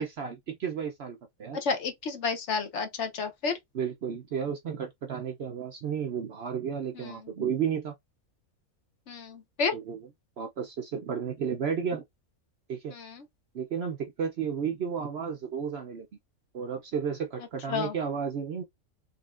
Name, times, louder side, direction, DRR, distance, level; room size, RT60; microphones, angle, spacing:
voice 1, 0.0-1.6 3.7-7.9 9.7-10.0 10.4-12.0 12.7-12.9 13.5-16.1 16.5-18.6, right 7 dB, 60° right, 0.7 m, -32 dB
voice 2, 1.5-3.6 7.0-7.1 9.1-9.7 12.9-13.2 17.7-17.9, left 5 dB, 60° left, 1.0 m, -31 dB
4.1 x 3.3 x 2.4 m
omnidirectional pair, 1.5 m